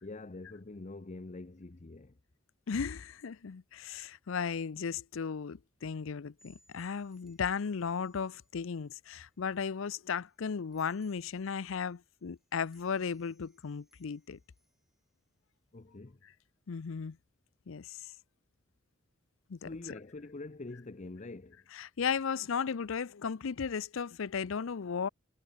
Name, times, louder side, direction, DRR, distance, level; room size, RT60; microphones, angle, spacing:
voice 1, 0.0-2.2 15.7-16.2 19.6-21.7, left 2 dB, 35° left, 0.7 m, -45 dB
voice 2, 2.7-14.4 16.7-17.2 17.7-18.0 19.5-19.7 21.8-25.1, left 6 dB, 70° left, 0.5 m, -35 dB
sound 1, 6.4-16.0, right 1 dB, ahead, 7.2 m, -72 dB
head